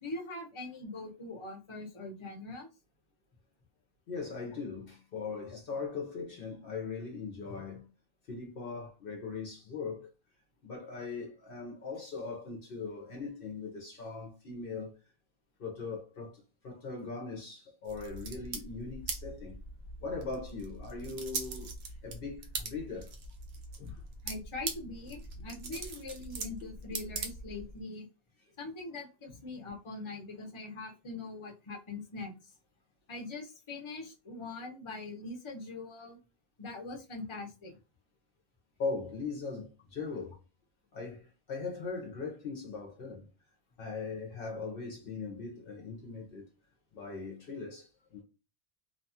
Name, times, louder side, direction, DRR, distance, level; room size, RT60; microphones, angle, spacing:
voice 1, 0.0-2.7 24.2-28.1 28.6-32.3 33.1-36.2 36.6-37.8, left 2 dB, 30° left, 0.8 m, -42 dB
voice 2, 4.1-7.9 8.3-10.1 10.6-15.0 15.6-16.3 16.6-19.6 20.0-23.1 23.8-24.0 25.8-25.9 38.8-40.4 40.9-43.2 43.8-46.5 46.9-48.2, left 4 dB, 60° left, 0.8 m, -40 dB
sound 1, 17.8-27.8, right 4 dB, 75° right, 0.9 m, -42 dB
2.7 x 2.3 x 2.6 m
omnidirectional pair, 1.1 m